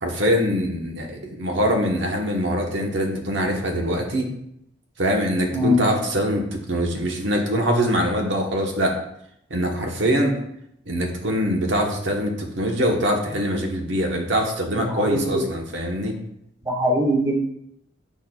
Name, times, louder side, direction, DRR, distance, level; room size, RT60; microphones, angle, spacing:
voice 1, 0.0-4.3 5.0-9.0 9.5-10.4 10.9-16.2, equal, 80° right, 2 dB, 1.1 m, -23 dB
voice 2, 5.5-5.8 14.8-15.4 16.6-17.5, equal, 20° right, 0 dB, 0.9 m, -22 dB
8.1 x 6.5 x 2.3 m, 0.75 s
head